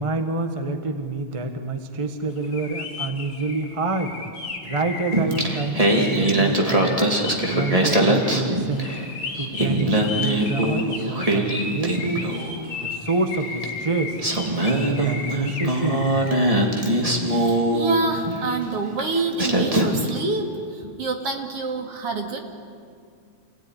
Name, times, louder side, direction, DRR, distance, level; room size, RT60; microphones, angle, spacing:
voice 1, 0.0-4.2 4.6-7.0 7.4-8.9 9.4-12.3 12.8-14.2 14.6-16.1 20.8-21.0 21.8-21.9, right 3 dB, 30° right, 6 dB, 0.5 m, -27 dB
sound 1, 2.4-16.6, left 4 dB, 55° left, 3.4 m, -35 dB
Singing, 5.1-9.1 9.4-12.6 13.6-13.7 14.2-18.4 19.0-19.1 19.4-20.2, right 1 dB, 15° right, 2.2 m, -22 dB
voice 2, 17.3-22.4, right 3 dB, 55° right, 3 dB, 3.1 m, -27 dB
27.0 x 17.5 x 10.0 m, 2.2 s
omnidirectional pair, 3.4 m